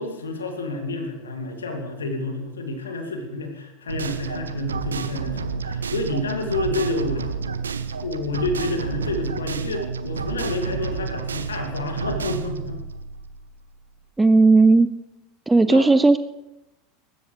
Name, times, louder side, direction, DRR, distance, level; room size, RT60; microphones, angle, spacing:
voice 1, 0.0-7.6 8.0-12.8 15.6-15.9, left 2 dB, 75° left, 4 dB, 2.5 m, -29 dB
sound 1, 3.9-13.8, right 5 dB, 75° right, 0.8 m, -30 dB
voice 2, 14.2-14.9 15.5-16.2, right 3 dB, 10° right, 12 dB, 0.5 m, -15 dB
22.5 x 13.0 x 3.4 m, 0.95 s
figure-of-eight pair, 80°, 0 cm